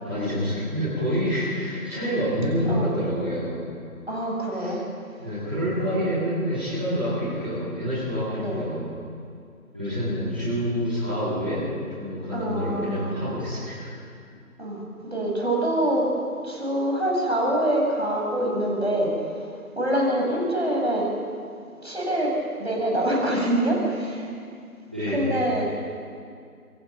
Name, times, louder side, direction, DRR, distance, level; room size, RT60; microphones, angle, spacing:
voice 1, 0.0-3.5 4.5-4.7 5.2-8.9 9.7-11.6 11.9-13.9 24.9-25.3, equal, 5° right, -17 dB, 3.4 m, -27 dB
voice 2, 4.1-4.8 8.3-8.6 12.3-13.1 14.6-16.1 16.4-19.5 19.8-21.1 21.8-24.3 25.1-25.8, right 1 dB, 45° right, -1 dB, 7.1 m, -25 dB
27.5 x 26.0 x 6.0 m, 2.3 s
figure-of-eight pair, 175°, 45 cm